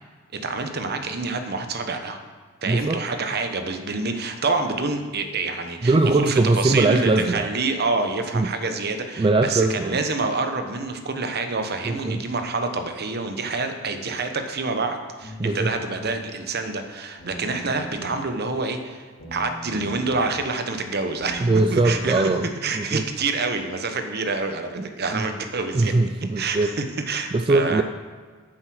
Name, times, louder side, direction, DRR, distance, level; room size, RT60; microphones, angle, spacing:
voice 1, 0.3-2.2 2.6-22.3 22.6-25.9 26.4-27.8, right 3 dB, 50° right, 7 dB, 1.0 m, -27 dB
voice 2, 2.6-3.1 5.8-7.5 8.3-8.5 9.2-10.0 11.8-12.2 15.4-15.7 21.4-22.5 22.8-23.1 24.8-24.9 25.1-25.3 25.7-26.8 27.3-27.8, right 2 dB, 25° right, 7 dB, 0.3 m, -21 dB
sound 1, 15.2-16.2 17.2-18.2 19.2-20.2 21.2-22.2, right 1 dB, 50° left, 3.7 m, -39 dB
9.3 x 7.5 x 6.2 m, 1.5 s
head